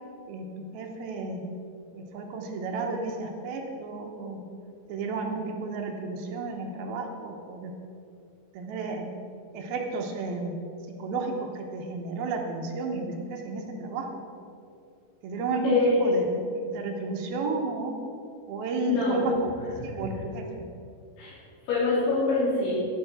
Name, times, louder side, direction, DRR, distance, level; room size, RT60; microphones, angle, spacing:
voice 1, 0.7-1.4 1.9-4.4 4.9-7.7 8.5-9.1 9.5-10.6 11.0-14.2 15.2-17.9 18.5-20.6, right 3 dB, 70° right, 1 dB, 2.5 m, -32 dB
voice 2, 15.6-16.1 18.9-19.2 21.2-21.3 21.7-22.7, left 3 dB, 75° left, -9 dB, 5.5 m, -24 dB
11.0 x 10.0 x 6.1 m, 2.6 s
omnidirectional pair, 5.4 m